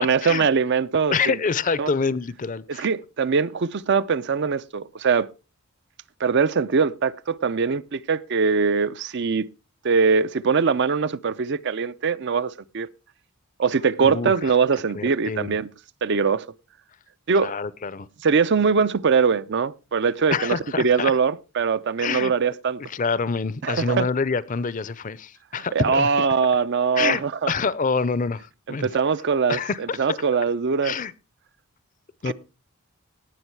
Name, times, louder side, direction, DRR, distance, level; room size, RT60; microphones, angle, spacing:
voice 1, 0.0-1.4 1.8-1.9 2.7-5.3 6.2-9.5 9.8-12.9 13.6-15.7 16.0-16.4 17.3-17.5 18.2-22.8 23.6-24.1 25.7-27.5 28.7-30.9 32.3-32.4, right 5 dB, 55° right, 0.5 m, -22 dB
voice 2, 1.1-2.9 14.0-14.3 14.9-15.6 17.4-18.1 20.3-21.1 22.0-22.3 22.9-26.1 27.0-27.2 27.5-28.9 29.5-30.0 30.8-31.1 32.2-32.3, left 5 dB, 40° left, 0.6 m, -26 dB
18.0 x 6.3 x 4.6 m
head